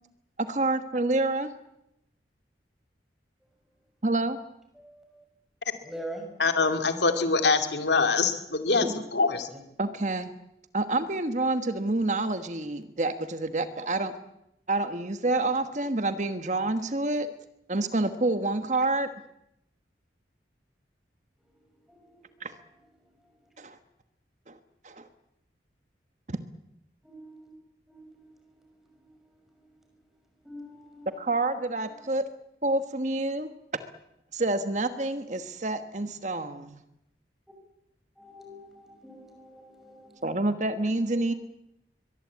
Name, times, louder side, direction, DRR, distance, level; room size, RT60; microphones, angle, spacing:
voice 1, 0.4-1.5 4.0-4.4 8.8-8.9 9.8-10.3 10.7-14.1 14.7-17.3 17.7-19.1 22.4-22.5 23.6-23.8 24.5-24.6 24.8-25.1 26.3-26.4 31.2-32.2 32.6-33.8 34.3-36.8 40.2-41.3, right 2 dB, 40° right, 9 dB, 1.3 m, -28 dB
voice 2, 4.8-5.2 5.8-6.3 21.9-22.2 27.0-27.5 27.9-28.6 29.0-29.1 30.4-31.1 38.2-40.4, right 1 dB, ahead, 3 dB, 5.9 m, -44 dB
voice 3, 6.4-8.9 9.1-9.5, left 4 dB, 75° left, 7 dB, 2.5 m, -24 dB
23.5 x 21.0 x 8.6 m, 0.82 s
head